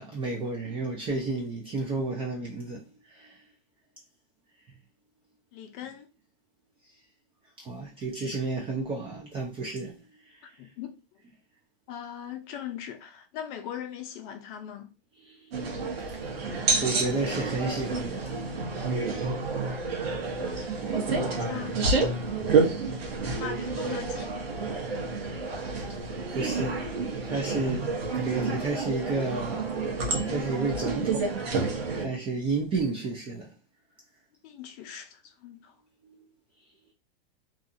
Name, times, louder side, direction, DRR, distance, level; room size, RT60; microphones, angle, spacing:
voice 1, 0.0-3.4 7.6-10.5 15.2-15.8 16.1-16.3 16.8-18.4 19.3-19.4 20.1-20.2 20.6-21.5 22.2-23.2 26.3-26.9 27.2-29.7 30.3-31.4 32.0-33.5 36.0-36.3, right 3 dB, 20° right, 0.4 m, -32 dB
voice 2, 5.5-6.1 10.6-10.9 11.9-14.9 20.4-20.7 21.2-21.8 23.4-24.4 34.4-35.7, left 9 dB, 40° left, 0.5 m, -40 dB
sound 1, 15.5-32.0, right 4 dB, 85° right, 1.1 m, -29 dB
2.6 x 2.3 x 2.6 m
hypercardioid pair, 130°, 30 cm